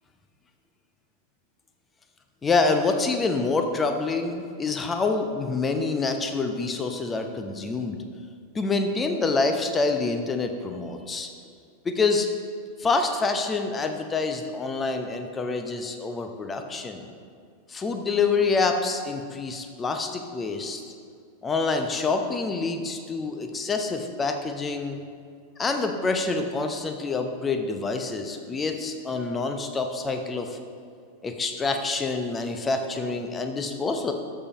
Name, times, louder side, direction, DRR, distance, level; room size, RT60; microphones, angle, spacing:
voice 1, 2.4-8.0 8.5-11.3 11.8-12.3 12.8-17.1 17.7-20.8 21.4-25.0 25.6-30.6 31.2-34.1, left 3 dB, 15° left, 6 dB, 0.8 m, -26 dB
13.0 x 7.0 x 3.0 m, 2.3 s
figure-of-eight pair, 90°, 0 cm